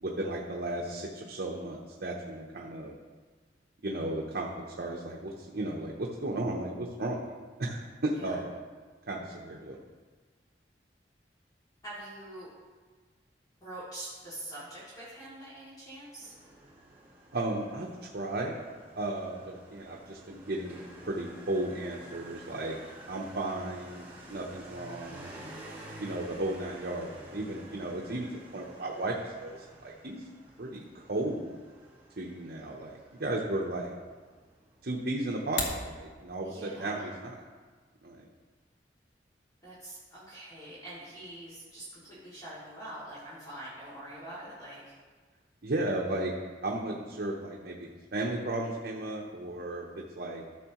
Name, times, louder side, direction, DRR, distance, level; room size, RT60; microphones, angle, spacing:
voice 1, 0.0-3.0 3.8-4.5 4.8-7.2 7.6-8.6 9.1-9.8 17.3-18.6 19.0-22.7 23.1-25.3 26.0-30.2 30.6-31.5 32.2-33.9 34.8-37.4 38.0-38.2 45.6-46.3 46.6-49.8 50.1-50.4, right 1 dB, 60° right, -2 dB, 0.9 m, -34 dB
voice 2, 11.8-12.5 13.6-16.3 36.4-37.1 39.6-44.9, right 1 dB, 20° left, -10 dB, 2.6 m, -44 dB
Motorcycle, 16.2-35.0, right 1 dB, 10° right, 1.5 m, -51 dB
sound 1, 35.3-35.9, left 2 dB, 80° left, 1.6 m, -33 dB
13.5 x 6.3 x 3.1 m, 1.4 s
head